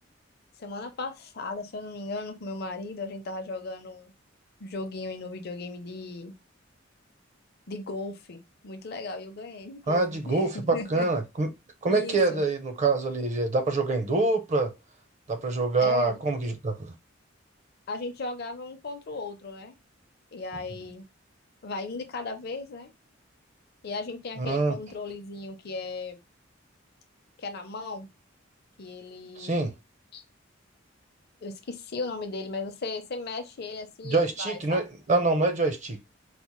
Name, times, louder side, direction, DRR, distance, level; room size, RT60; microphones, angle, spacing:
voice 1, 0.6-4.1 4.6-6.3 7.7-11.1 11.8-12.4 15.8-16.2 17.9-19.8 20.3-21.0 21.6-22.9 23.8-26.2 27.4-28.1 28.8-29.6 30.1-30.2 31.4-34.8, left 3 dB, 55° left, 0.6 m, -36 dB
voice 2, 9.9-11.5 11.8-14.7 15.3-16.9 24.4-24.8 29.4-29.7 34.0-36.0, right 3 dB, 40° right, 0.6 m, -25 dB
4.1 x 2.0 x 3.0 m
head